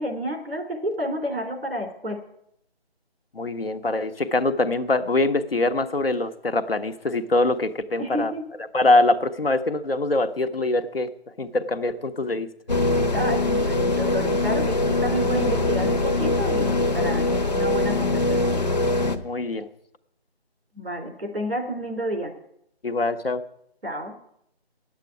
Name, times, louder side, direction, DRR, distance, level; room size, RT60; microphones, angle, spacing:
voice 1, 0.0-2.2 8.0-8.4 13.1-18.6 20.7-22.3 23.8-24.1, equal, 65° right, 4 dB, 3.5 m, -30 dB
voice 2, 3.3-8.3 8.7-11.1 11.4-12.5 19.2-19.7 22.8-23.4, left 2 dB, 60° left, 7 dB, 1.1 m, -23 dB
sound 1, 12.7-19.2, left 2 dB, 40° left, 1.0 m, -22 dB
9.8 x 8.3 x 9.5 m, 0.75 s
figure-of-eight pair, 180°, 32 cm